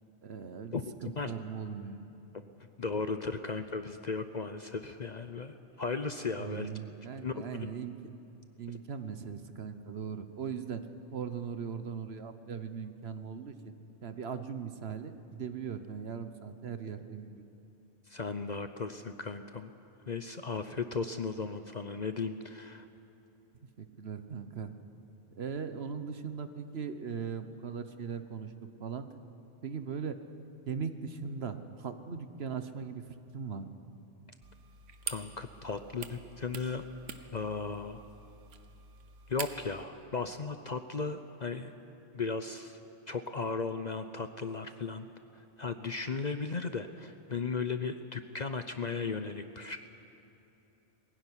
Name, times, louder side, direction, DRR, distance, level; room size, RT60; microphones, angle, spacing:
voice 1, 0.2-0.7 1.0-2.0 6.4-8.0 8.6-13.7 14.0-17.4 23.8-24.7 25.3-29.1 29.6-30.2 30.7-33.7, right 6 dB, 60° right, 10 dB, 1.2 m, -39 dB
voice 2, 0.7-1.3 2.8-6.7 7.2-7.7 18.1-19.7 20.1-22.9 35.1-36.8 37.3-38.0 39.3-41.7 42.1-42.8 43.1-45.1 45.3-49.8, left 4 dB, 45° left, 9 dB, 0.7 m, -36 dB
sound 1, 34.4-39.8, right 6 dB, 80° right, 1.4 m, -45 dB
21.0 x 16.0 x 9.8 m, 2.9 s
omnidirectional pair, 1.3 m